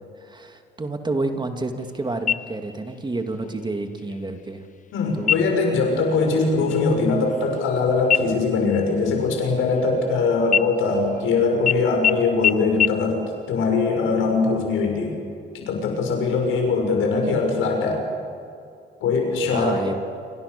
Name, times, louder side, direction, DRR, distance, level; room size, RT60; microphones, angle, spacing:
voice 1, 0.2-4.6 5.1-5.4 19.4-19.9, right 2 dB, 20° right, 5 dB, 2.6 m, -29 dB
sound 1, 2.3-2.9 3.3-3.4 4.0-4.5 5.2-5.7 6.1-6.4 6.7-7.8 8.1-10.1 10.5-11.3 11.7-11.8 12.0-12.1 12.4-12.5 12.8-12.9, left 9 dB, 40° left, 0.8 m, -24 dB
voice 2, 4.9-13.2 13.5-15.1 15.5-18.0 19.0-19.8, left 4 dB, 90° left, 2 dB, 6.8 m, -21 dB
27.5 x 26.5 x 7.0 m, 2.5 s
cardioid pair, 90°, 20 cm